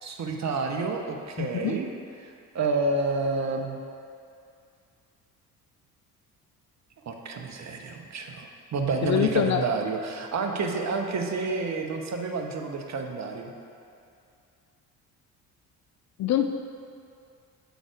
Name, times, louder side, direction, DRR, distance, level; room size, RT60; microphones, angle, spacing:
voice 1, 0.0-1.9 2.2-3.8 7.1-13.5, right 3 dB, 35° right, 3 dB, 0.9 m, -29 dB
voice 2, 1.4-1.8 9.0-9.6 16.2-16.5, left 10 dB, 40° left, 6 dB, 0.4 m, -24 dB
9.2 x 4.0 x 4.7 m, 2.4 s
hypercardioid pair, 50°, 44 cm